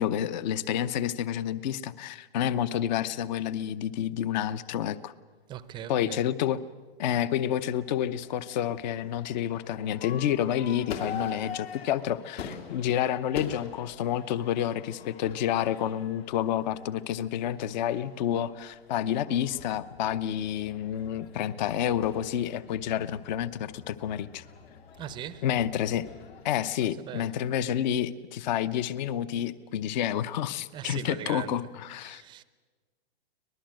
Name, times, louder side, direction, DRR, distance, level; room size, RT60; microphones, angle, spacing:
voice 1, 0.0-5.1 5.9-6.6 7.0-24.4 25.4-26.1 26.4-32.2, left 10 dB, 45° left, 0.8 m, -29 dB
voice 2, 5.5-6.2 25.0-25.4 27.1-27.3 30.7-31.5 32.0-32.4, right 10 dB, 15° right, 0.6 m, -39 dB
Crowd / Fireworks, 7.5-26.5, left 7 dB, 70° left, 3.3 m, -45 dB
24.0 x 20.0 x 7.7 m
hypercardioid pair, 145°, 32 cm